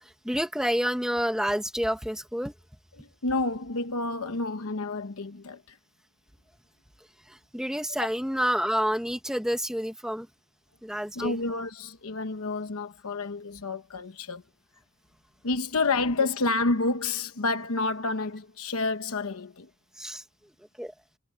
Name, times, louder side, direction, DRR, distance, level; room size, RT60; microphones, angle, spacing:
voice 1, 0.0-2.5 7.3-10.3 10.8-11.4 20.0-20.2 20.8-20.9, equal, 5° right, 1.6 m, -29 dB
voice 2, 3.0-5.8 11.2-14.4 15.4-19.7, left 3 dB, 80° left, 1.0 m, -29 dB
head